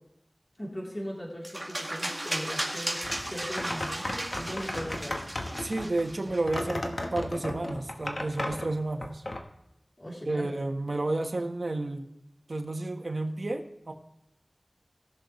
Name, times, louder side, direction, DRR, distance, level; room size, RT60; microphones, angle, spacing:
voice 1, 0.6-3.0 3.3-5.3 10.0-10.5, equal, 30° left, -3 dB, 3.3 m, -39 dB
sound 1, 1.4-6.6, right 1 dB, 20° right, 1.9 m, -35 dB
sound 2, 3.0-9.4, left 1 dB, 70° left, 1.2 m, -35 dB
voice 2, 5.6-9.2 10.3-12.0 12.5-13.9, right 2 dB, 70° right, 3 dB, 1.3 m, -31 dB
19.0 x 6.5 x 3.2 m, 0.86 s
wide cardioid pair, 55°, 0 cm